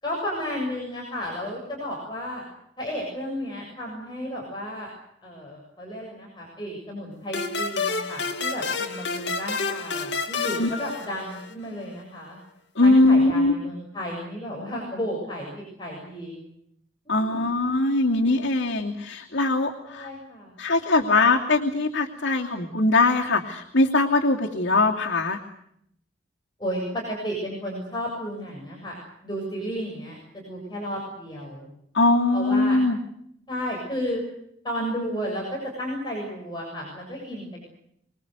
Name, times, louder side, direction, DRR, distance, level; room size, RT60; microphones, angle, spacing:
voice 1, 0.0-2.4 2.8-4.9 5.2-12.4 12.8-16.4 17.1-17.5 19.9-20.5 26.6-28.9 29.2-31.7 32.3-32.8 33.5-34.2 34.6-37.6, equal, 25° left, -2 dB, 7.2 m, -33 dB
sound 1, 7.3-11.7, left 4 dB, 70° left, 2.4 m, -29 dB
voice 2, 12.8-13.6 17.1-20.1 20.6-25.4 31.9-33.0, left 2 dB, 90° left, -2 dB, 2.8 m, -21 dB
26.0 x 21.5 x 8.2 m, 0.73 s
head